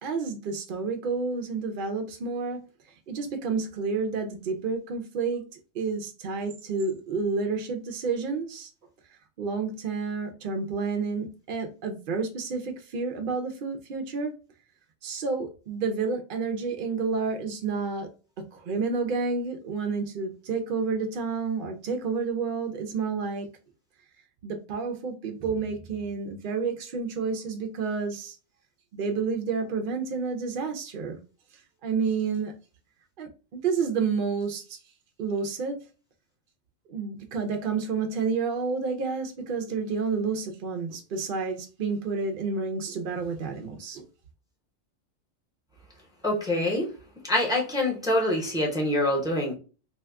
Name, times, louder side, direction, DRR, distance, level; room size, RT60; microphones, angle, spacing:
voice 1, 0.0-2.6 3.1-8.7 9.4-14.3 15.0-18.1 18.5-23.5 24.4-28.4 28.9-31.2 31.8-32.5 33.2-33.3 33.6-34.8 35.2-35.8 36.9-44.0, right 4 dB, 60° right, 0.6 m, -30 dB
voice 2, 46.2-46.9 47.2-49.5, left 1 dB, 5° right, 0.6 m, -25 dB
2.8 x 2.3 x 3.4 m
omnidirectional pair, 1.3 m